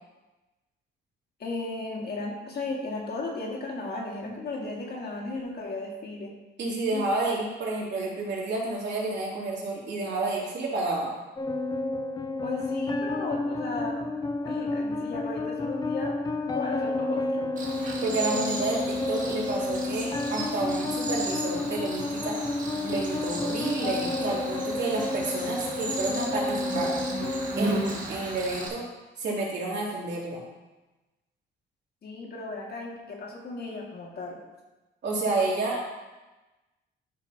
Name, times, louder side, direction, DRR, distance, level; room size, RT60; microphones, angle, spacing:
voice 1, 1.4-6.3 6.9-7.2 12.4-14.0 14.4-16.1 16.4-17.5 32.0-34.4, left 2 dB, 55° left, -2 dB, 2.0 m, -35 dB
voice 2, 6.6-11.1 18.0-22.4 22.8-26.9 27.6-28.8 29.2-30.4 35.0-35.9, right 2 dB, 60° right, -5 dB, 3.0 m, -30 dB
sound 1, 11.4-28.4, left 2 dB, 20° left, 0.6 m, -31 dB
Cricket, 17.6-28.7, right 2 dB, 40° right, 1.8 m, -35 dB
11.5 x 5.9 x 2.9 m, 1.1 s
cardioid pair, 90°, 20 cm